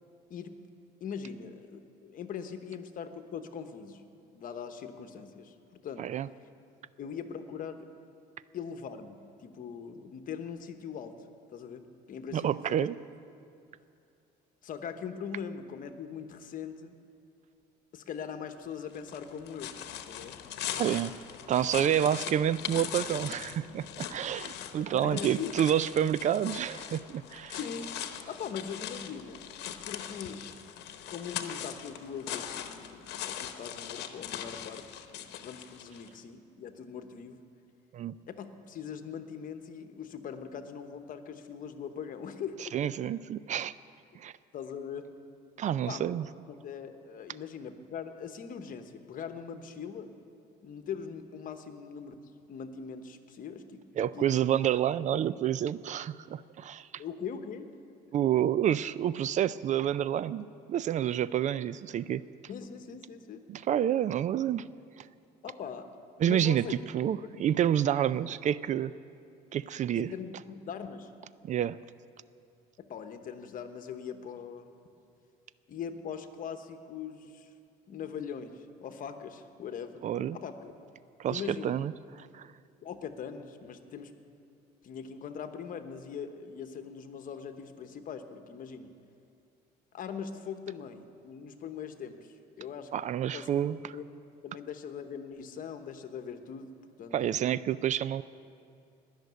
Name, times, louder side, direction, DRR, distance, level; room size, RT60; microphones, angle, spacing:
voice 1, 1.0-4.0 4.3-6.1 7.0-7.9 8.5-11.2 11.5-11.8 12.1-12.9 14.6-16.9 17.9-19.7 20.1-20.3 21.8-21.9 24.9-25.6 27.5-27.9 28.3-29.4 29.8-30.5 31.1-34.8 35.1-37.4 38.3-42.9 44.5-45.1 45.9-46.1 46.5-50.1 50.6-53.8 54.1-54.3 54.6-54.7 57.0-57.7 62.5-63.4 65.4-65.9 66.2-66.8 67.2-67.5 69.9-71.1 72.8-74.7 75.7-77.5 77.9-80.0 80.3-80.7 81.3-81.8 82.8-84.1 84.8-88.9 89.9-92.9 93.3-94.0 94.4-96.7 97.0-97.3, left 7 dB, 55° left, 8 dB, 1.1 m, -41 dB
voice 2, 12.3-13.0 20.8-21.1 21.5-27.6 37.9-38.1 42.7-43.7 44.2-44.3 45.6-46.3 54.0-57.0 58.1-62.2 63.5-64.6 65.0-65.1 66.2-68.9 69.5-70.1 71.4-71.8 80.0-80.4 81.2-81.9 82.3-82.5 92.9-93.8 97.1-98.2, right 10 dB, 45° right, 17 dB, 0.4 m, -29 dB
sound 1, 18.9-36.1, left 10 dB, 80° left, 1.0 m, -41 dB
19.5 x 6.6 x 9.3 m, 2.5 s
cardioid pair, 110°, 17 cm